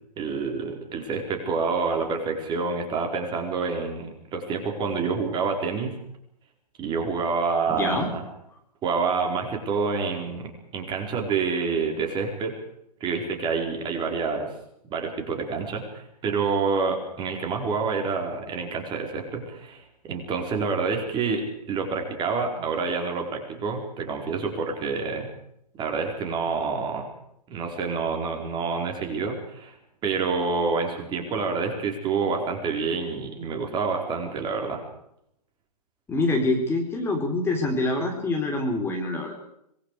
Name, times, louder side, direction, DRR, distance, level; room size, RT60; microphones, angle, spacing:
voice 1, 0.2-5.9 6.8-8.2 8.8-12.5 13.0-14.5 14.9-25.3 25.8-27.0 27.5-29.7 30.0-34.8, right 4 dB, 20° right, 2 dB, 4.7 m, -28 dB
voice 2, 7.7-8.1 36.1-39.4, left 2 dB, 10° left, 2 dB, 4.1 m, -25 dB
26.0 x 20.5 x 5.0 m, 0.75 s
hypercardioid pair, 125°, 21 cm